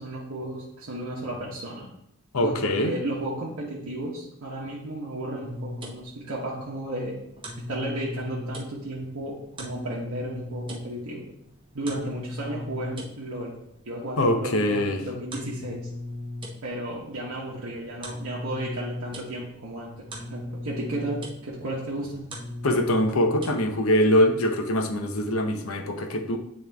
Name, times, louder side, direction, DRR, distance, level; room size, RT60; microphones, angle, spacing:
voice 1, 0.0-1.9 2.4-7.2 7.6-11.3 11.7-13.5 13.9-15.9 16.6-19.9 20.2-22.3, right 1 dB, 65° right, -5 dB, 1.0 m, -33 dB
voice 2, 2.3-2.9 14.2-15.0 22.6-26.4, left 1 dB, 70° left, 5 dB, 0.8 m, -23 dB
sound 1, 5.4-23.8, left 1 dB, 20° right, 1.1 m, -39 dB
9.1 x 3.2 x 3.4 m, 0.77 s
head